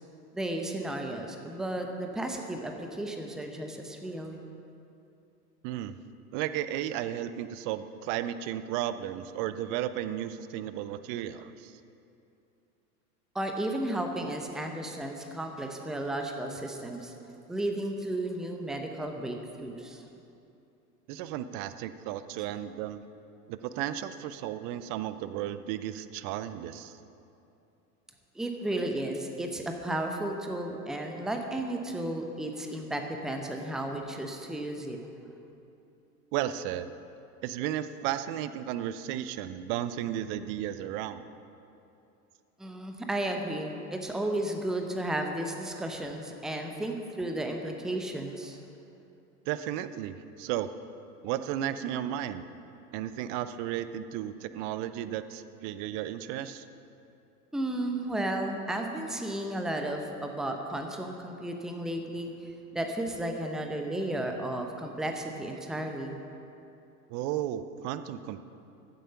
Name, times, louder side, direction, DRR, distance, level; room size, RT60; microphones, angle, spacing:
voice 1, 0.3-4.4 13.3-17.1 17.5-20.0 28.3-35.0 42.6-48.6 57.5-66.2, right 1 dB, ahead, 4 dB, 0.8 m, -33 dB
voice 2, 5.6-6.0 6.3-11.8 21.1-23.0 23.5-27.0 36.3-36.9 37.4-41.3 49.5-50.7 51.2-52.5 52.9-56.7 67.1-68.4, right 11 dB, 30° right, 12 dB, 0.5 m, -34 dB
14.5 x 7.8 x 5.7 m, 2.7 s
figure-of-eight pair, 85°, 48 cm